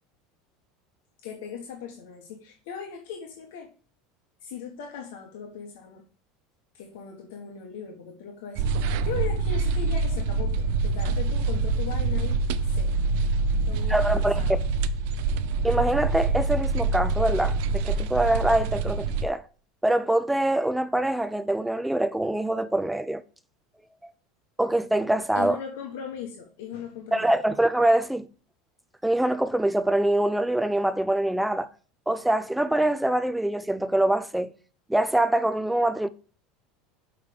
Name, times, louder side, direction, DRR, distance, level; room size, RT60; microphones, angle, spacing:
voice 1, 1.2-3.7 4.4-6.0 6.7-13.0 13.7-14.6 25.3-27.3, left 7 dB, 80° left, 1.3 m, -38 dB
sound 1, 8.6-19.3, right 3 dB, 65° right, 0.5 m, -25 dB
voice 2, 13.9-14.6 15.6-19.4 19.8-23.2 24.6-25.6 27.1-28.3 29.0-31.7 32.1-34.5 34.9-36.1, right 1 dB, 5° right, 0.3 m, -24 dB
6.5 x 4.8 x 5.2 m
supercardioid pair, 145°, 0 cm